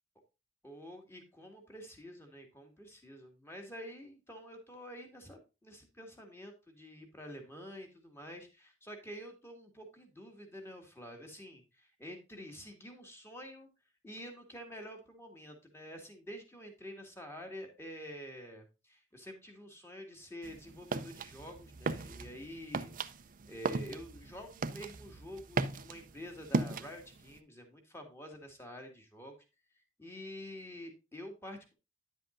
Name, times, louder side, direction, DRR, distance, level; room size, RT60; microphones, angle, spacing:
voice 1, 0.6-13.7 14.0-22.9 23.5-29.4 30.0-31.7, equal, 15° left, 3 dB, 2.1 m, -48 dB
sound 1, 20.4-27.4, right 3 dB, 45° right, 0.6 m, -38 dB
10.0 x 7.7 x 2.6 m, 0.28 s
head